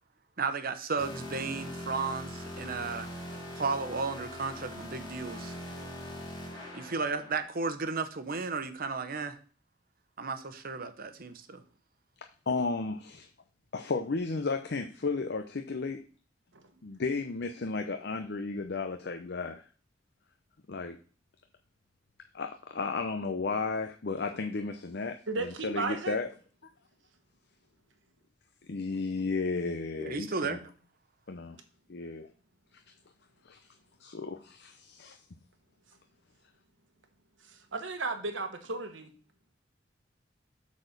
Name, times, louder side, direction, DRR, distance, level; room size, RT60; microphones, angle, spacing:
voice 1, 0.4-3.0 3.6-5.5 6.7-9.4 10.2-11.6 30.0-30.6, right 4 dB, 50° right, 10 dB, 0.9 m, -34 dB
sound 1, 1.0-7.5, left 1 dB, 25° left, 2.9 m, -42 dB
voice 2, 12.5-13.3 13.7-16.0 16.8-19.6 20.7-21.0 22.3-26.3 28.7-30.6 31.3-31.6 31.9-32.3 32.7-32.8 33.4-33.6 34.0-35.2, left 4 dB, 60° left, 6 dB, 0.7 m, -33 dB
voice 3, 25.3-26.1 37.5-39.1, right 3 dB, 85° right, 6 dB, 1.2 m, -34 dB
8.4 x 4.3 x 6.6 m, 0.40 s
head